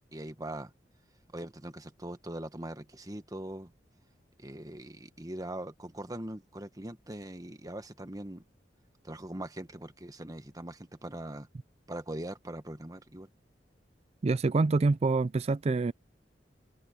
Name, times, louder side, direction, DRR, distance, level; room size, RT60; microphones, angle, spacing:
voice 1, 0.1-0.7 1.3-3.7 4.4-8.4 9.0-11.5 11.9-13.3, right 1 dB, 20° right, 1.5 m, -41 dB
voice 2, 14.2-15.9, right 3 dB, 35° right, 0.4 m, -26 dB
head